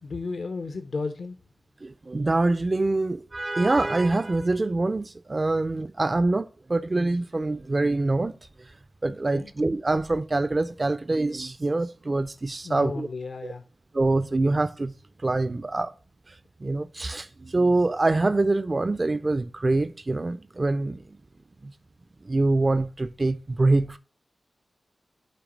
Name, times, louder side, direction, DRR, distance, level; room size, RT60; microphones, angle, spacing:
voice 1, 0.0-1.4 9.3-9.5 12.6-13.6, left 3 dB, 70° left, 0.6 m, -33 dB
voice 2, 1.8-8.3 9.0-13.1 13.4-13.5 13.9-14.9 15.2-15.9 16.3-16.4 16.6-21.0 21.6-21.7 22.3-24.0, right 2 dB, 35° right, 0.3 m, -25 dB
8.6 x 2.9 x 5.0 m
cardioid pair, 60°, 0 cm